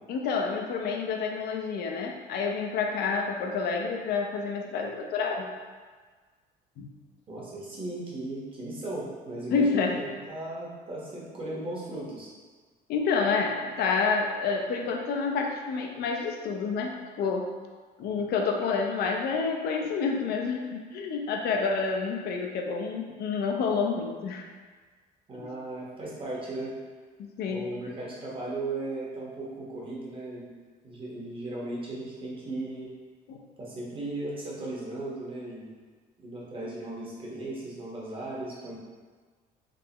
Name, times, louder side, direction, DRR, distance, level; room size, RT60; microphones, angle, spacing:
voice 1, 0.1-5.5 6.8-6.9 9.5-10.0 12.9-17.5 18.0-24.5 25.3-25.5 27.2-27.7 33.3-33.4, left 5 dB, 70° left, 2 dB, 0.6 m, -29 dB
voice 2, 7.3-12.3 25.3-26.7 27.5-30.5 30.8-32.9 33.6-35.7 36.2-38.8, right 2 dB, 30° right, -5 dB, 1.3 m, -36 dB
3.8 x 3.3 x 2.9 m, 1.5 s
cardioid pair, 110°, 17 cm